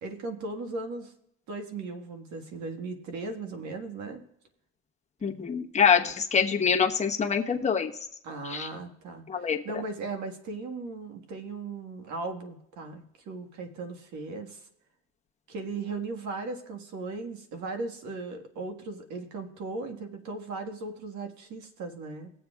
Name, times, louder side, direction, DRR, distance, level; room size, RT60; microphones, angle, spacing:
voice 1, 0.0-1.1 1.5-4.2 8.2-14.7 15.5-22.3, right 3 dB, 70° right, 5 dB, 1.7 m, -37 dB
voice 2, 5.2-7.9 8.4-8.7 9.3-9.8, left 6 dB, 25° left, 1 dB, 1.1 m, -25 dB
19.5 x 7.7 x 2.4 m, 0.75 s
cardioid pair, 120°, 30 cm